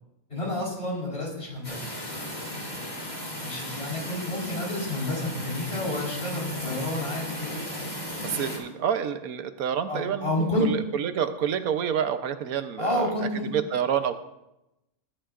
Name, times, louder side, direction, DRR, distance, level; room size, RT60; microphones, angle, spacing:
voice 1, 0.3-1.8 3.4-7.5 9.9-10.7 12.8-13.5, left 1 dB, 45° left, -4 dB, 4.4 m, -30 dB
sound 1, 1.6-8.6, left 1 dB, 30° left, 3.1 m, -35 dB
voice 2, 8.2-13.1 13.5-14.2, right 8 dB, 80° right, 9 dB, 1.2 m, -28 dB
19.0 x 11.0 x 2.5 m, 0.90 s
omnidirectional pair, 1.5 m